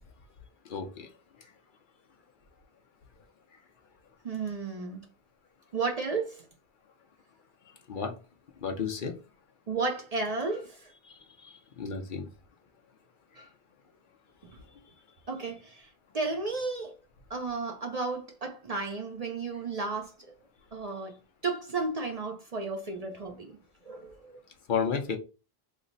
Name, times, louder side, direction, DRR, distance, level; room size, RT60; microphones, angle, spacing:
voice 1, 0.7-1.1 7.9-8.1 8.6-9.2 11.0-12.3 24.7-25.2, left 6 dB, 60° left, 0.8 m, -33 dB
voice 2, 4.2-5.1 5.7-6.5 9.7-10.9 13.3-13.5 14.4-14.6 15.3-17.0 17.3-20.3 20.7-21.2 21.4-23.5 23.8-24.4, right 3 dB, 45° right, 0.6 m, -33 dB
3.1 x 2.0 x 3.8 m
omnidirectional pair, 1.0 m